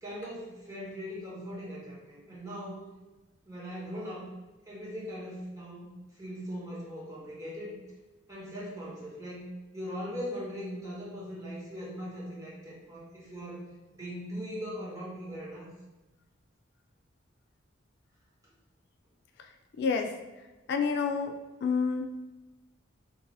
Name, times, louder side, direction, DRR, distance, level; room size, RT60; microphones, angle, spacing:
voice 1, 0.0-2.8 3.4-4.3 4.7-7.7 8.3-13.6 13.9-15.7, equal, 15° right, -7 dB, 1.1 m, -40 dB
voice 2, 19.8-20.1 20.7-21.3 21.6-22.1, left 5 dB, 60° left, 4 dB, 0.3 m, -28 dB
3.0 x 2.6 x 3.9 m, 1.1 s
head